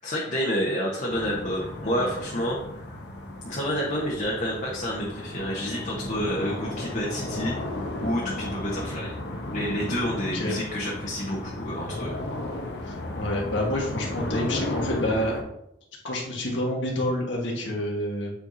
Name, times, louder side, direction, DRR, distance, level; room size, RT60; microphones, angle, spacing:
voice 1, 0.0-2.8 3.4-7.5 8.0-9.1 9.5-12.1, equal, 45° left, -3 dB, 1.0 m, -29 dB
sound 1, 1.1-15.4, left 1 dB, 65° left, 0.9 m, -34 dB
voice 2, 10.2-10.6 12.8-15.3 16.0-18.3, left 1 dB, 85° left, -1 dB, 1.6 m, -28 dB
8.3 x 4.6 x 2.7 m, 0.79 s
head